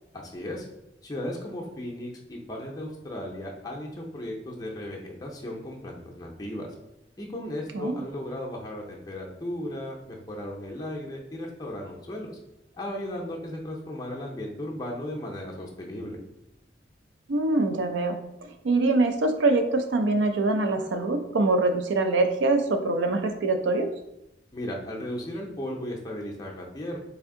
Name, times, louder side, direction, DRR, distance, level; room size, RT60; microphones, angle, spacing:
voice 1, 0.1-0.7 1.0-6.7 7.2-12.4 12.7-16.2 24.5-27.0, left 1 dB, 20° left, -2 dB, 0.5 m, -36 dB
voice 2, 17.3-23.9, right 2 dB, 85° right, 7 dB, 0.4 m, -24 dB
3.4 x 2.6 x 3.6 m, 0.88 s
head